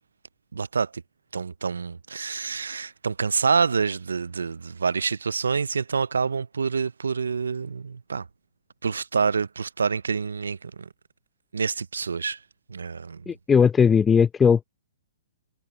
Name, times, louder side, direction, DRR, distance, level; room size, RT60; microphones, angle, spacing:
voice 1, 0.5-1.0 1.3-8.2 8.8-10.9 11.5-12.4 12.7-13.2, right 5 dB, 85° right, 0.4 m, -27 dB
voice 2, 13.3-14.6, left 6 dB, 15° left, 0.7 m, -18 dB
hypercardioid pair, 135°, 0 cm